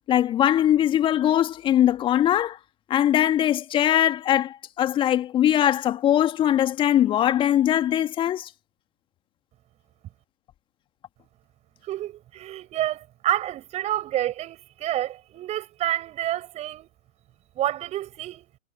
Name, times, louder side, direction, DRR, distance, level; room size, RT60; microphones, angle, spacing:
voice 1, 0.1-2.6 2.9-8.5, left 11 dB, 10° left, 2.0 m, -21 dB
voice 2, 11.8-16.9 17.5-18.5, right 13 dB, 15° right, 7.6 m, -29 dB
figure-of-eight pair, 130°, 39 cm